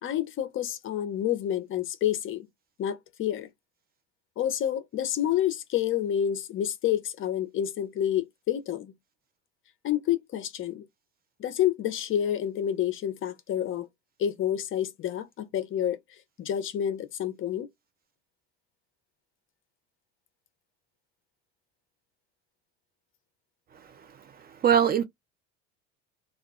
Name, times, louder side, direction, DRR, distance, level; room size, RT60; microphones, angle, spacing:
voice 1, 0.0-2.5 2.8-3.5 4.4-8.9 9.8-10.9 11.4-13.9 14.2-16.0 16.4-17.7, left 10 dB, 40° left, 0.6 m, -29 dB
voice 2, 24.4-25.0, right 8 dB, 30° right, 0.5 m, -22 dB
2.4 x 2.2 x 3.6 m
supercardioid pair, 110°, 31 cm